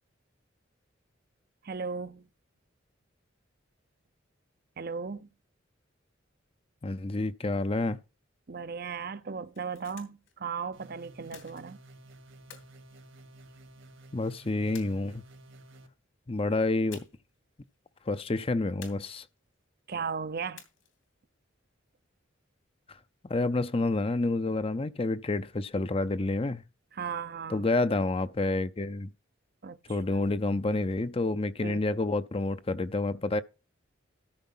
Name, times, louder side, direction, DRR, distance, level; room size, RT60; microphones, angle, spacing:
voice 1, 1.6-2.3 4.8-5.3 8.5-11.8 19.9-20.6 26.9-27.6 29.6-30.2 31.6-31.8, right 5 dB, 50° right, 0.7 m, -36 dB
voice 2, 6.8-8.0 14.1-15.2 16.3-17.0 18.1-19.2 23.2-26.6 27.5-29.1 29.9-33.4, left 2 dB, 30° left, 0.5 m, -29 dB
sound 1, 9.3-10.3 11.3-12.0 12.5-13.8 14.7-15.5 16.9-17.4 17.6-17.8 18.8-19.5 20.6-21.1, left 7 dB, 75° left, 2.8 m, -52 dB
sound 2, 10.7-15.9, right 1 dB, 75° right, 2.2 m, -53 dB
13.0 x 4.7 x 5.6 m
head